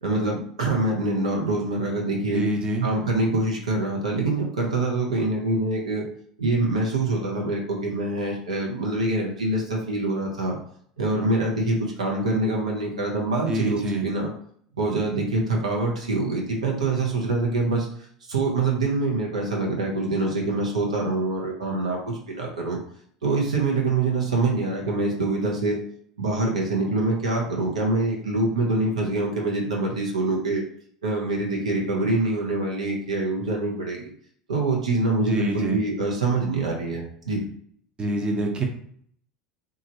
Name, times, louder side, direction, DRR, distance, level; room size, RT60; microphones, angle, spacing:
voice 1, 0.0-2.4 2.8-6.1 6.4-10.6 11.0-14.3 14.8-17.9 18.3-22.8 23.2-25.8 26.2-30.6 31.0-34.1 34.5-37.4, right 2 dB, 85° right, -1 dB, 0.8 m, -25 dB
voice 2, 2.3-2.9 13.5-14.1 35.3-35.8 38.0-38.6, right 2 dB, 25° right, 2 dB, 0.7 m, -26 dB
3.1 x 2.4 x 2.7 m, 0.62 s
hypercardioid pair, 80°, 4 cm